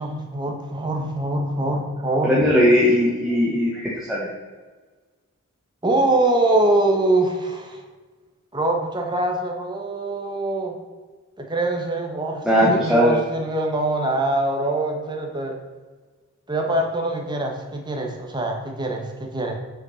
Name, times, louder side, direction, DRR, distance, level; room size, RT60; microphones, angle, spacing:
voice 1, 0.0-2.3 5.8-7.8 8.5-10.8 11.4-15.5 16.5-19.5, right 2 dB, 20° right, 2 dB, 1.5 m, -23 dB
voice 2, 2.2-4.3 12.4-13.2, equal, ahead, -7 dB, 1.5 m, -18 dB
9.0 x 6.3 x 5.8 m, 1.4 s
head